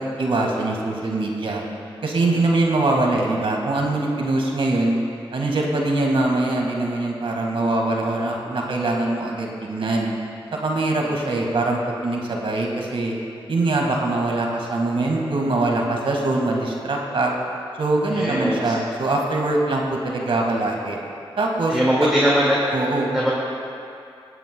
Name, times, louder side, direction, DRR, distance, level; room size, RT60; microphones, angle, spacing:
voice 1, 0.0-1.6 2.0-5.0 5.3-10.1 10.5-13.1 13.5-17.3 17.8-21.0 21.4-22.1 22.7-23.1, right 2 dB, 65° right, 0 dB, 1.7 m, -23 dB
voice 2, 18.1-18.7 21.7-22.6 23.1-23.3, equal, 5° right, -7 dB, 1.9 m, -21 dB
20.5 x 9.0 x 2.2 m, 2.6 s
cardioid pair, 45°, 10 cm